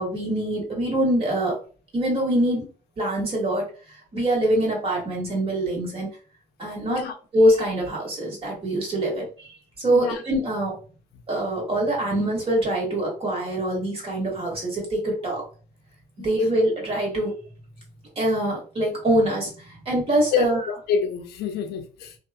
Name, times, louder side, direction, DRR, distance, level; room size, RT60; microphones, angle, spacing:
voice 1, 0.0-1.5 1.9-2.7 3.0-6.1 6.6-7.0 7.3-10.8 11.3-15.4 16.2-17.3 18.1-20.6, right 1 dB, 35° right, 1.4 m, -24 dB
voice 2, 9.9-10.2 16.2-16.3 20.3-20.5 20.9-22.2, left 6 dB, 70° left, 0.5 m, -26 dB
2.8 x 2.4 x 2.2 m
cardioid pair, 110°, 17 cm